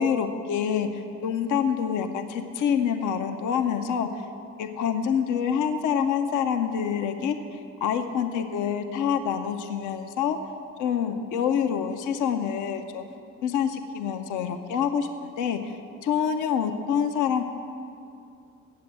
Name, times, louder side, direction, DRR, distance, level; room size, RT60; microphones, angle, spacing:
voice 1, 0.0-4.2 4.6-7.4 7.8-10.4 10.8-13.0 13.4-15.1 15.4-17.4, left 7 dB, 85° left, 7 dB, 0.6 m, -26 dB
8.4 x 7.7 x 7.4 m, 2.5 s
cardioid pair, 90°, 30 cm